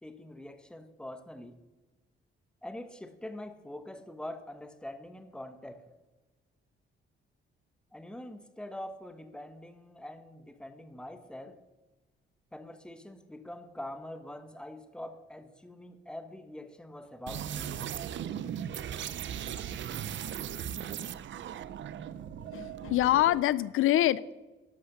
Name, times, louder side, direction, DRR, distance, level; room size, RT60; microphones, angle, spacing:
voice 1, 0.0-1.6 2.6-5.9 7.9-11.6 12.5-17.8, left 1 dB, 5° left, 9 dB, 1.0 m, -44 dB
sound 1, 17.3-23.4, right 9 dB, 65° right, 0.6 m, -38 dB
voice 2, 22.5-24.3, left 13 dB, 85° left, 19 dB, 0.5 m, -25 dB
11.5 x 11.5 x 6.6 m, 1.1 s
cardioid pair, 135°, 21 cm